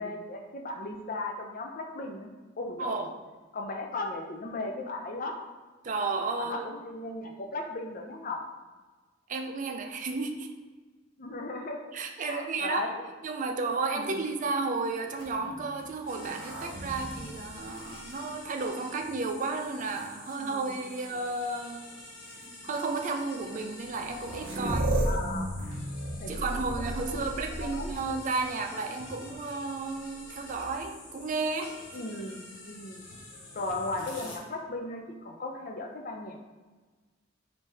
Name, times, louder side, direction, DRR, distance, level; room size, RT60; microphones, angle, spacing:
voice 1, 0.0-3.1 3.5-5.5 6.4-8.4 11.2-11.8 12.3-13.0 13.9-14.2 20.4-20.8 21.1-21.2 25.0-25.5 26.2-26.8 27.3-28.0 31.9-33.1 33.5-36.4, left 2 dB, 45° left, 2 dB, 0.6 m, -37 dB
voice 2, 2.8-3.1 5.8-6.7 9.3-10.5 11.9-12.8 13.2-21.9 22.6-25.0 26.3-31.8, right 3 dB, 40° right, 4 dB, 0.5 m, -33 dB
sound 1, 15.1-18.9 19.6-20.3 21.4-21.5 22.3-22.4 23.6-23.7 23.9-28.3 30.3-31.0, right 1 dB, 85° right, 1.1 m, -35 dB
sound 2, 16.1-34.4, left 2 dB, 90° left, 0.9 m, -47 dB
5.2 x 2.8 x 3.4 m, 1.3 s
head